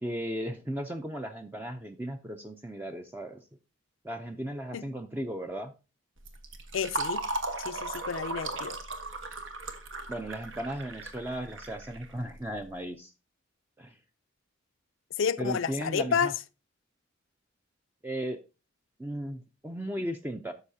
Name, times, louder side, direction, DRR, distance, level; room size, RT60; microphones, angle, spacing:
voice 1, 0.0-3.4 4.0-5.7 10.1-13.1 13.8-14.0 15.4-16.3 18.0-18.4 19.0-20.5, right 1 dB, 10° right, 0.4 m, -36 dB
Fill (with liquid), 6.2-12.6, right 2 dB, 75° right, 1.2 m, -37 dB
voice 2, 6.7-7.2 7.6-8.8 15.2-16.3, left 6 dB, 80° left, 0.4 m, -30 dB
13.0 x 5.6 x 2.7 m
head